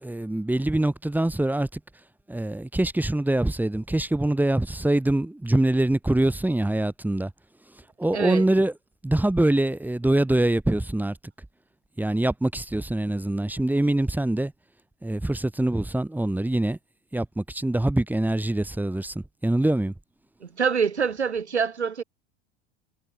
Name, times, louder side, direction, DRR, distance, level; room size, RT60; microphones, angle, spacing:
voice 1, 0.0-1.7 2.3-7.3 8.0-8.7 9.0-11.1 12.0-14.5 15.0-16.8 17.1-19.1 19.4-19.9, right 1 dB, 5° right, 2.6 m, -24 dB
voice 2, 8.1-8.4 20.4-22.0, right 6 dB, 90° right, 2.2 m, -25 dB
hypercardioid pair, 85°, 33 cm